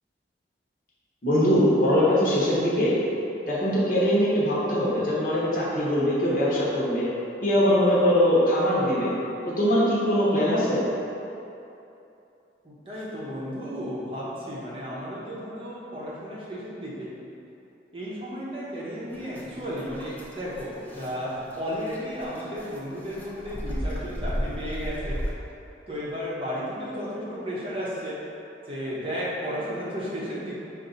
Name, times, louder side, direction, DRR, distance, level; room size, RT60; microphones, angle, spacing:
voice 1, 1.2-3.0 3.5-7.1 7.4-9.1 9.6-10.8, equal, 50° left, -8 dB, 1.0 m, -22 dB
voice 2, 12.6-17.2 17.9-25.2 25.9-28.2 28.7-30.5, equal, 30° right, -7 dB, 0.7 m, -33 dB
sound 1, 19.1-25.3, equal, 10° left, 0.4 m, -35 dB
5.2 x 2.6 x 3.9 m, 2.8 s
head